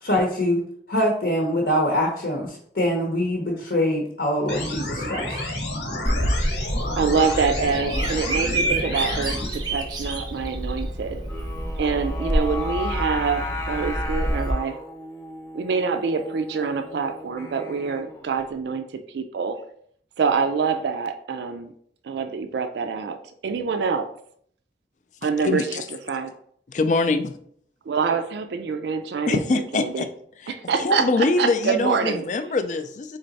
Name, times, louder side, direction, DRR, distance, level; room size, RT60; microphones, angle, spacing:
voice 1, 0.0-0.6 0.9-5.4, left 1 dB, 65° left, 0 dB, 0.8 m, -24 dB
sound 1, 4.5-9.5, left 1 dB, 85° left, 1.1 m, -30 dB
Bird vocalization bird call bird song, 6.1-14.5, right 1 dB, 25° right, 0.6 m, -27 dB
voice 2, 7.0-11.2 11.8-14.8 15.5-18.8 19.1-19.6 20.2-21.7 22.0-23.2 23.4-24.1 25.2-25.8 26.1-26.3 27.9-30.0 30.5-32.2, right 5 dB, 70° right, 7 dB, 0.3 m, -25 dB
Singing, 11.3-18.4, left 2 dB, 15° left, 0.7 m, -35 dB
voice 3, 26.7-27.3 29.3-30.1 30.4-33.2, left 3 dB, 40° left, 9 dB, 0.3 m, -24 dB
3.9 x 3.2 x 4.0 m, 0.65 s
head